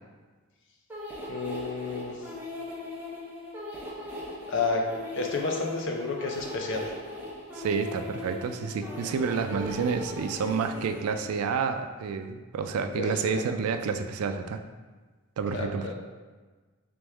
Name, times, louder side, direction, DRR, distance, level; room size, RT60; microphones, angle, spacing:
sound 1, 0.9-11.4, left 1 dB, 10° right, 0.5 m, -39 dB
voice 1, 1.3-2.1 4.5-4.8 5.1-6.9 13.0-13.4 15.5-15.9, left 3 dB, 55° left, 1 dB, 0.5 m, -30 dB
voice 2, 7.5-14.6 15.4-15.9, right 5 dB, 75° right, 8 dB, 0.3 m, -29 dB
3.4 x 3.1 x 3.4 m, 1.3 s
head